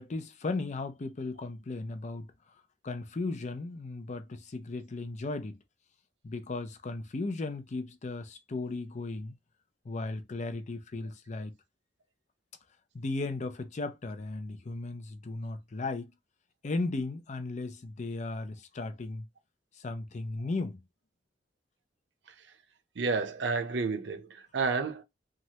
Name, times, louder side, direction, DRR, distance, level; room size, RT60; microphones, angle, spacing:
voice 1, 0.0-2.3 2.8-5.6 6.2-9.3 9.9-11.5 12.9-16.1 16.6-19.2 19.8-20.8, left 3 dB, 40° left, 0.5 m, -36 dB
voice 2, 23.0-25.0, right 4 dB, 75° right, 0.6 m, -30 dB
3.1 x 2.4 x 2.8 m
head